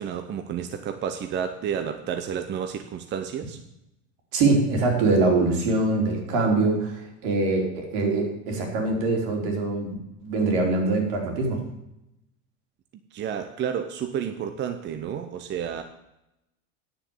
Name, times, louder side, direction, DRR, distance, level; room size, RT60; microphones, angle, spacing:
voice 1, 0.0-3.6 13.1-15.8, right 8 dB, 30° right, 7 dB, 0.7 m, -31 dB
voice 2, 4.3-10.0 10.2-11.6, right 3 dB, 70° right, 1 dB, 3.6 m, -23 dB
9.8 x 7.0 x 7.1 m, 0.86 s
supercardioid pair, 135°, 36 cm